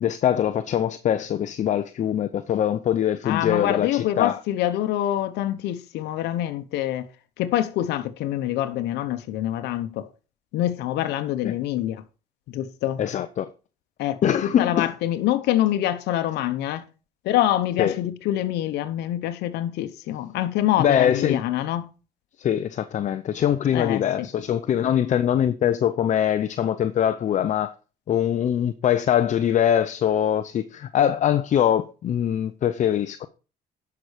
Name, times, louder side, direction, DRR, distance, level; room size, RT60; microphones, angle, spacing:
voice 1, 0.0-4.4 11.4-11.5 13.0-13.5 14.2-14.9 17.8-18.0 20.8-21.4 22.4-27.7 28.1-33.3, left 10 dB, 45° left, 0.6 m, -23 dB
voice 2, 3.2-7.1 7.4-10.1 10.5-12.0 12.5-13.0 14.0-16.8 17.2-21.9 23.7-24.3, left 12 dB, 80° left, 0.9 m, -25 dB
11.0 x 6.0 x 5.0 m
cardioid pair, 110°, 17 cm